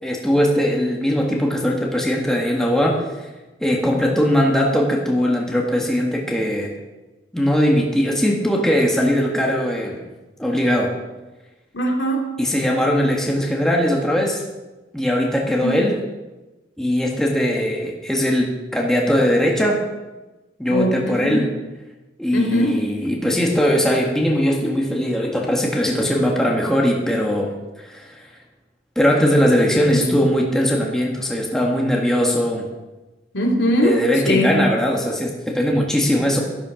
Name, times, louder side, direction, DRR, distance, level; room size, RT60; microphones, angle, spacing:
voice 1, 0.0-3.0 3.6-6.7 7.3-10.1 10.4-10.9 12.4-14.4 14.9-16.0 16.8-19.8 20.6-21.5 22.2-27.5 27.8-28.2 29.0-32.7 33.8-36.4, equal, 5° left, -1 dB, 1.8 m, -20 dB
voice 2, 11.7-12.4 15.6-15.8 20.7-21.4 22.3-22.9 29.9-30.1 33.3-34.6, equal, 90° left, 0 dB, 2.8 m, -21 dB
12.5 x 12.0 x 5.1 m, 1.1 s
head